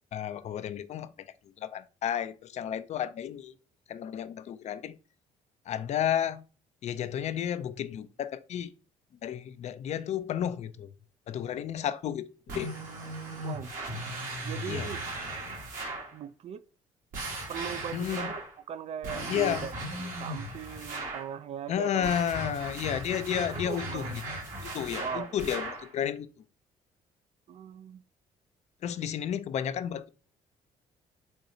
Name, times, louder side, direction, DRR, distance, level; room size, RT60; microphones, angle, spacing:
voice 1, 0.1-3.6 3.9-5.0 5.7-6.5 6.8-8.7 9.2-10.9 11.3-12.8 14.7-14.9 17.9-18.3 19.3-19.7 21.7-24.2 24.6-26.4 28.8-30.1, left 10 dB, 45° left, 0.4 m, -32 dB
sound 1, 12.5-16.1 17.1-18.5 19.0-21.3 22.0-25.9, right 2 dB, 60° right, 1.5 m, -37 dB
voice 2, 13.4-13.7 14.4-15.0 16.1-16.6 17.5-18.4 18.7-19.7 20.0-22.1 22.5-22.6 23.3-24.2 25.0-25.4 27.5-28.0, right 8 dB, 45° right, 0.4 m, -39 dB
4.2 x 2.3 x 2.6 m
hypercardioid pair, 55°, 15 cm